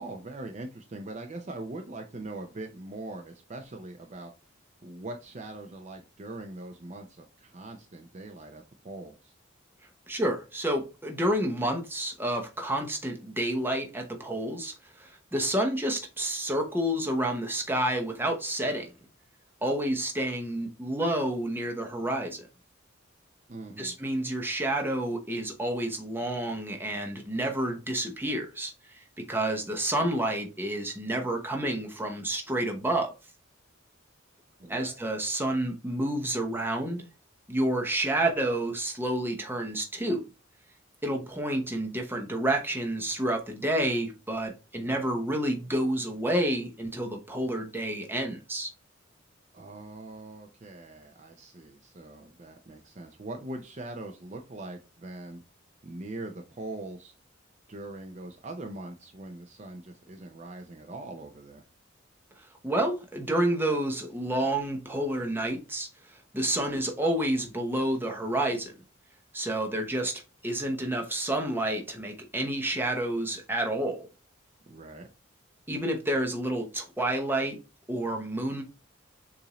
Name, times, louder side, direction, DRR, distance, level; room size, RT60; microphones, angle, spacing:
voice 1, 0.0-4.3 4.8-9.3 23.5-24.0 34.6-35.0 49.5-55.4 55.8-57.1 57.7-61.6 74.7-75.1, right 2 dB, 35° right, 0.6 m, -41 dB
voice 2, 10.1-18.9 19.6-22.5 23.8-33.1 34.7-37.1 37.5-40.2 41.0-48.7 62.6-65.9 66.3-68.7 69.3-74.1 75.7-77.6 77.9-78.6, right 1 dB, 10° right, 0.8 m, -29 dB
6.8 x 2.6 x 3.0 m
head